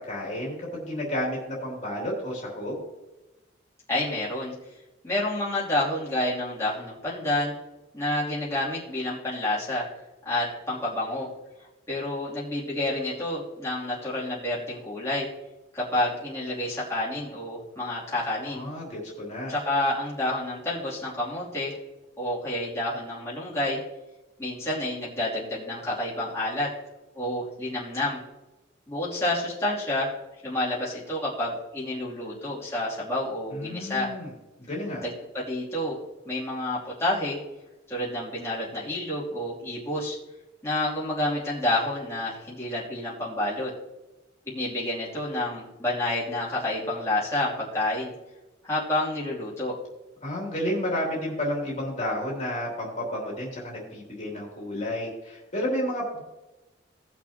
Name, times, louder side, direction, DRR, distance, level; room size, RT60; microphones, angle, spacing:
voice 1, 0.0-2.8 18.5-19.5 33.5-34.3 34.7-35.0 50.2-56.2, left 1 dB, 40° left, -3 dB, 2.9 m, -31 dB
voice 2, 3.9-4.5 5.0-7.5 7.9-9.9 10.2-11.3 11.9-15.3 15.7-18.7 19.5-21.8 22.2-23.8 24.4-26.7 27.1-28.2 28.9-30.2 30.4-34.1 35.0-36.0 36.2-37.4 37.9-40.2 40.6-43.7 44.5-48.1 48.6-49.8, left 1 dB, 15° left, -8 dB, 2.9 m, -29 dB
18.5 x 6.3 x 2.9 m, 1.0 s
head